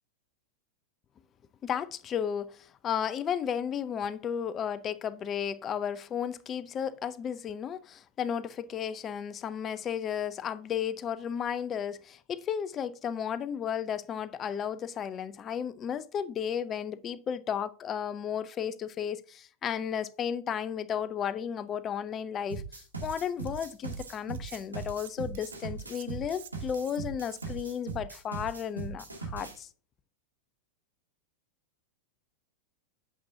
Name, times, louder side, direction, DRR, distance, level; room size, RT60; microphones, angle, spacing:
voice 1, 1.6-2.5 2.8-29.7, left 8 dB, 25° left, 0.5 m, -34 dB
sound 1, 22.5-29.6, right 4 dB, 80° right, 2.4 m, -39 dB
Cutlery silverware, 23.0-23.7 23.9-27.7, right 10 dB, 60° right, 0.6 m, -50 dB
8.6 x 6.9 x 2.7 m
figure-of-eight pair, 90°, 0 cm